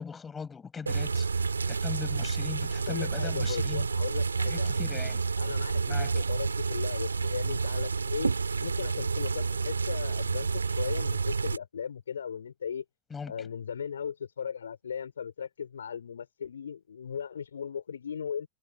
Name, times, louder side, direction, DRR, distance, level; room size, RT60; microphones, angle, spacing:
voice 1, 0.0-3.9 4.5-5.2 5.9-6.2 13.1-13.3, left 5 dB, 15° left, 7.4 m, -39 dB
sound 1, 0.9-11.6, right 4 dB, 75° right, 3.2 m, -29 dB
voice 2, 2.8-4.8 5.4-8.3 8.6-12.8 13.3-18.5, left 7 dB, 70° left, 4.4 m, -37 dB
figure-of-eight pair, 90°, 0 cm